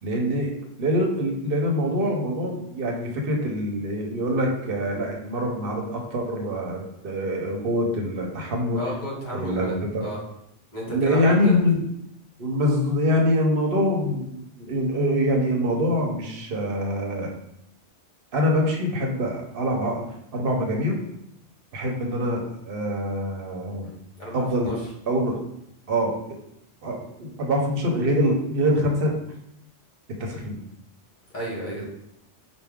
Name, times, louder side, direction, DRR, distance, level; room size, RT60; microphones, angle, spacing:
voice 1, 0.0-8.8 9.3-10.1 10.9-11.8 12.4-17.3 18.3-20.0 20.3-21.0 21.7-23.9 24.3-24.8 25.1-25.4 25.9-26.1 26.8-29.1 30.2-30.6, equal, 55° right, 1 dB, 0.9 m, -24 dB
voice 2, 8.7-9.7 10.0-10.2 10.7-11.5 23.8-24.9 31.3-31.8, right 1 dB, 45° left, -5 dB, 1.3 m, -33 dB
4.6 x 2.3 x 3.5 m, 0.78 s
omnidirectional pair, 1.2 m